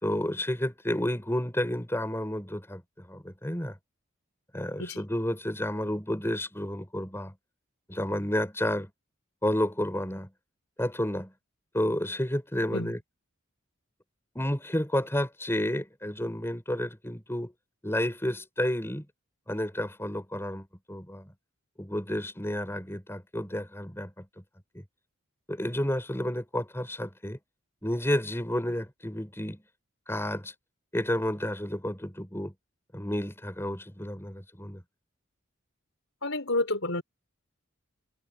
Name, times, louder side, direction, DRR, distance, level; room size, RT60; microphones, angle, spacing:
voice 1, 0.0-3.8 4.5-7.3 7.9-8.9 9.4-10.3 10.8-11.3 11.7-13.0 14.3-17.5 17.8-19.1 19.5-21.3 21.8-24.4 24.7-24.8 25.5-27.4 27.8-29.6 30.1-30.5 30.9-32.5 32.9-34.8, left 1 dB, 10° left, 4.7 m, -31 dB
voice 2, 36.2-37.0, left 2 dB, 70° left, 4.8 m, -29 dB
head